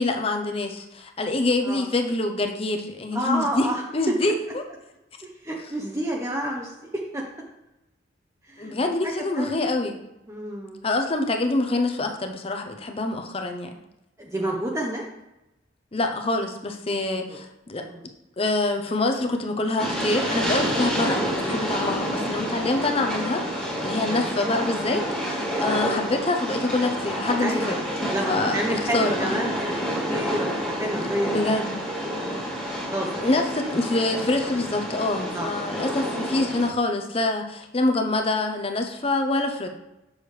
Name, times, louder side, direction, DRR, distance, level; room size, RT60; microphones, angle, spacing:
voice 1, 0.0-4.6 8.6-10.0 10.8-13.8 15.9-17.8 18.4-27.8 28.3-29.3 31.3-31.7 33.2-39.7, left 2 dB, 30° left, 5 dB, 0.6 m, -26 dB
voice 2, 3.1-3.8 5.2-7.2 8.5-8.7 9.3-9.6 10.3-10.8 14.2-15.0 17.0-17.4 17.9-18.0 20.9-21.0 22.5-22.7 24.1-24.3 27.4-27.8 28.1-29.6 29.9-31.6 32.0-32.4 32.9-33.4 33.8-33.9 35.3-35.9, equal, 15° right, -2 dB, 0.7 m, -30 dB
Train, 19.8-36.7, equal, 5° left, 1.6 m, -28 dB
6.9 x 6.3 x 3.2 m, 0.95 s
head